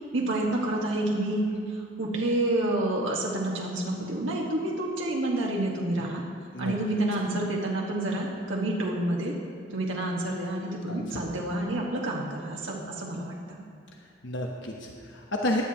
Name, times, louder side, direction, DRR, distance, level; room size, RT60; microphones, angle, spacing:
voice 1, 0.1-6.2 6.6-9.3 9.7-13.6, right 1 dB, 80° right, -2 dB, 1.5 m, -29 dB
voice 2, 10.9-11.2 14.2-15.6, left 1 dB, 65° left, 0 dB, 1.0 m, -31 dB
16.0 x 10.5 x 3.0 m, 2.5 s
head